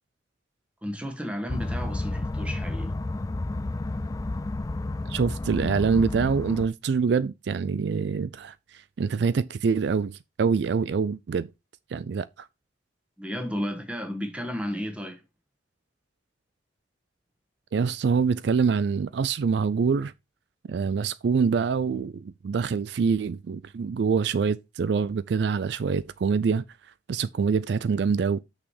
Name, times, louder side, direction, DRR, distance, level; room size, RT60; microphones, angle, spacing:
voice 1, 0.8-2.9 13.2-15.2, equal, 5° right, 1.5 m, -33 dB
sound 1, 1.5-6.7, left 2 dB, 20° left, 0.3 m, -31 dB
voice 2, 5.1-11.5 11.9-12.5 17.7-20.1 20.7-26.6 27.1-28.4, right 5 dB, 65° right, 0.4 m, -25 dB
6.3 x 6.0 x 4.7 m
head